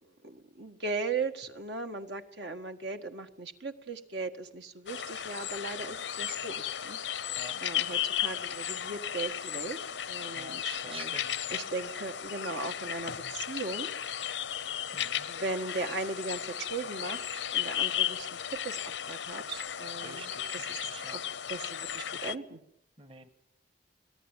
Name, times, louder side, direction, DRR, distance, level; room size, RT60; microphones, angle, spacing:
voice 1, 0.0-7.0 7.6-9.8 10.1-13.9 15.3-18.4 18.6-20.8 21.1-21.2 21.5-22.6, right 3 dB, 65° right, 6 dB, 1.8 m, -38 dB
sound 1, 4.9-22.4, left 10 dB, 85° left, 0.9 m, -35 dB
voice 2, 10.3-11.6 14.9-15.3 20.0-21.2 23.0-23.3, right 4 dB, 30° right, 10 dB, 1.5 m, -48 dB
25.5 x 18.0 x 9.1 m, 0.75 s
head